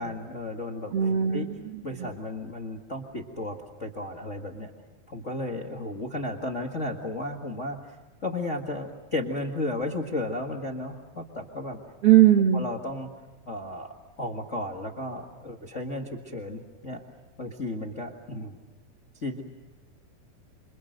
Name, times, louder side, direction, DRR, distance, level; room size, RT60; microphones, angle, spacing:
voice 1, 0.0-1.5 1.8-4.7 5.1-11.8 12.5-13.1 13.5-17.0 17.4-18.6 19.2-19.4, left 1 dB, 35° left, 2 dB, 1.2 m, -34 dB
voice 2, 0.9-1.5 2.0-2.1 12.0-12.7, right 11 dB, 65° right, 4 dB, 1.5 m, -19 dB
28.0 x 26.0 x 6.4 m, 1.2 s
omnidirectional pair, 4.3 m